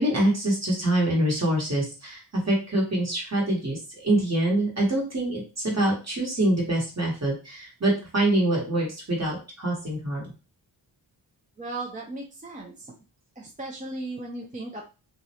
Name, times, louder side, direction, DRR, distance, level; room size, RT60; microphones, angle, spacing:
voice 1, 0.0-2.2 2.5-10.3, right 1 dB, 35° right, -2 dB, 1.1 m, -25 dB
voice 2, 11.6-12.9 13.4-14.8, right 2 dB, 20° right, -1 dB, 0.4 m, -36 dB
2.3 x 2.1 x 2.8 m, 0.31 s
wide cardioid pair, 65°, 46 cm